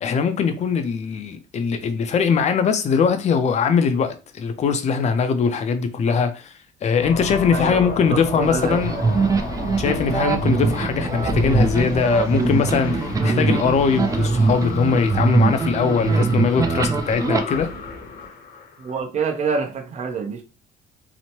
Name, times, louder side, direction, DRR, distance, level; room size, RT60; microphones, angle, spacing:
voice 1, 0.0-6.5 6.8-9.0 9.8-17.7, left 6 dB, 40° left, 0.5 m, -21 dB
sound 1, 7.0-19.0, left 2 dB, 65° left, 0.8 m, -32 dB
voice 2, 7.5-9.4 18.8-20.4, right 5 dB, 45° right, 0.7 m, -27 dB
sound 2, 8.4-17.4, right 3 dB, 20° right, 0.4 m, -22 dB
2.9 x 2.1 x 2.9 m
cardioid pair, 110°, 17 cm